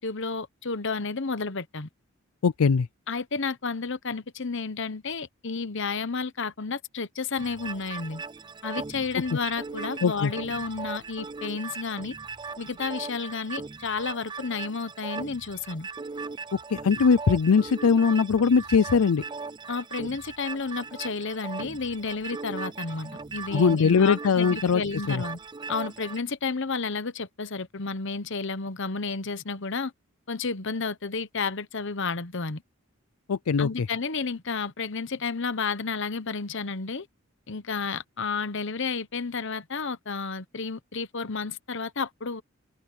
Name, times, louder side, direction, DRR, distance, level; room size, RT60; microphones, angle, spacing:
voice 1, 0.0-1.9 3.1-8.2 8.6-12.1 12.6-15.9 19.7-25.4 25.7-29.9 30.3-32.6 33.6-37.1 37.5-42.4, left 4 dB, 55° left, 1.0 m, -31 dB
voice 2, 2.4-2.9 10.0-10.3 16.5-19.2 23.5-24.8 25.1-25.2 33.3-33.9, left 5 dB, 80° left, 0.5 m, -21 dB
sound 1, 7.4-26.2, right 4 dB, 20° right, 0.4 m, -39 dB
head